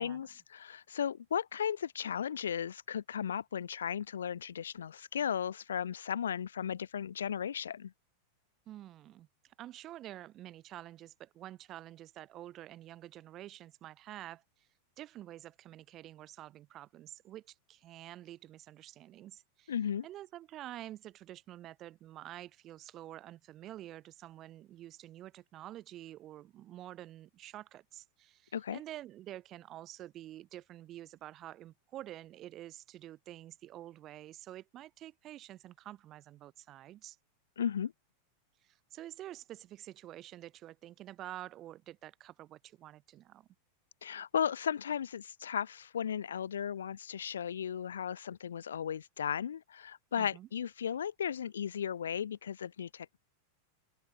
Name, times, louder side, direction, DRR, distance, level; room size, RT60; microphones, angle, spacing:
voice 1, 0.0-7.9 19.7-20.1 28.5-28.8 37.6-37.9 44.0-53.2, left 8 dB, 65° left, 0.4 m, -35 dB
voice 2, 8.7-14.4 15.0-19.7 20.0-37.2 38.6-43.5 50.1-50.5, right 13 dB, 35° right, 3.8 m, -48 dB
open air
figure-of-eight pair, 90°, 0 cm